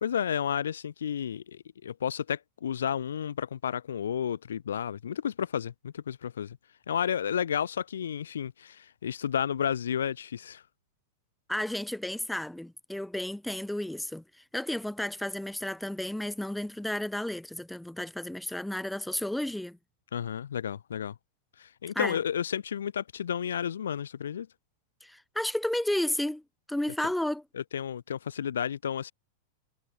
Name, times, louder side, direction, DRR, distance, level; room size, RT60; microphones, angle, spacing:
voice 1, 0.0-6.6 6.9-10.6 20.1-21.1 21.6-24.5 27.5-29.1, left 8 dB, 65° left, 0.7 m, -32 dB
voice 2, 11.5-14.2 14.5-19.8 22.0-22.2 25.0-26.4 26.7-27.4, left 1 dB, 5° left, 2.0 m, -32 dB
figure-of-eight pair, 90°, 0 cm